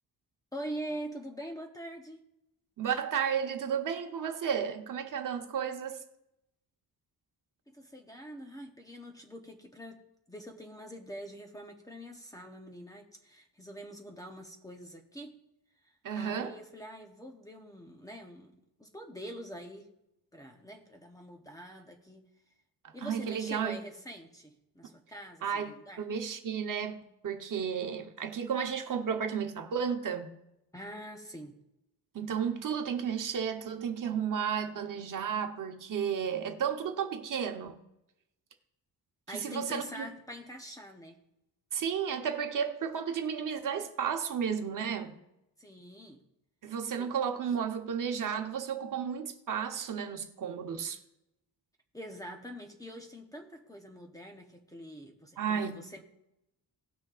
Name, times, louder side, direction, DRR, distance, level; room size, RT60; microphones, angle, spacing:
voice 1, 0.5-2.2 7.7-10.0 10.3-15.4 15.8-18.5 18.8-19.9 20.3-22.2 22.9-26.0 30.7-31.6 39.3-41.2 45.6-46.2 47.0-47.1 51.9-56.0, equal, 10° left, 0.8 m, -44 dB
voice 2, 2.8-6.0 16.0-16.6 22.8-23.8 25.4-30.3 32.1-37.8 39.3-40.0 41.7-45.2 46.6-51.0 55.4-55.8, right 7 dB, 55° right, 1.0 m, -33 dB
18.5 x 6.3 x 2.5 m
wide cardioid pair, 175°, 39 cm